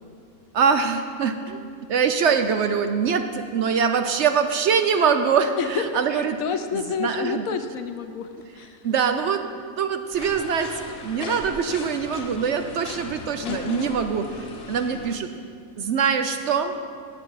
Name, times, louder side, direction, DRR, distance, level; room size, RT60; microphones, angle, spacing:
voice 1, 0.5-1.6 1.9-6.4 6.7-7.4 8.8-9.4 9.8-15.3 15.8-16.8, right 6 dB, 65° right, 8 dB, 0.8 m, -23 dB
voice 2, 5.6-8.8 13.4-13.9, left 6 dB, 75° left, 8 dB, 1.1 m, -30 dB
sound 1, 10.1-15.2, left 4 dB, 50° left, 1.0 m, -38 dB
14.5 x 8.7 x 4.7 m, 2.2 s
omnidirectional pair, 1.5 m